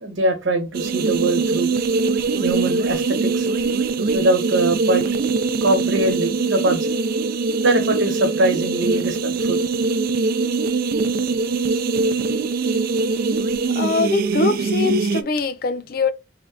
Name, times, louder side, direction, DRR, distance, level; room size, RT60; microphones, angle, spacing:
voice 1, 0.0-1.7 2.4-3.5 4.1-5.1 5.6-6.9 7.6-9.6, right 2 dB, 90° right, 1.1 m, -22 dB
sound 1, 0.7-15.2, right 4 dB, 50° right, 0.3 m, -22 dB
voice 2, 13.7-16.1, left 4 dB, 50° left, 0.4 m, -22 dB
3.5 x 2.3 x 3.7 m
head